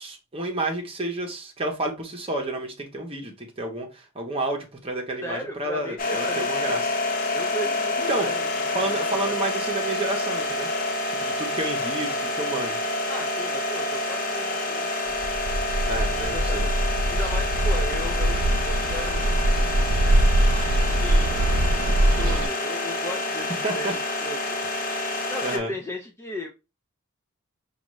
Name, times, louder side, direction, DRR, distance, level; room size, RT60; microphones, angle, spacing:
voice 1, 0.0-6.9 8.1-8.3 8.7-10.7 11.1-12.8 15.9-16.7 23.6-23.9 24.8-24.9 25.4-25.7, right 2 dB, 25° right, 2 dB, 0.9 m, -30 dB
voice 2, 5.2-6.7 7.3-9.3 13.1-14.9 16.2-16.7 17.1-19.4 21.0-23.9 24.2-24.6 25.3-26.5, left 1 dB, 10° left, 1 dB, 0.4 m, -36 dB
sound 1, 6.0-25.6, left 2 dB, 40° left, 0.7 m, -28 dB
Bird, 15.2-22.5, right 1 dB, 75° right, 0.5 m, -23 dB
4.9 x 2.4 x 3.1 m, 0.28 s
head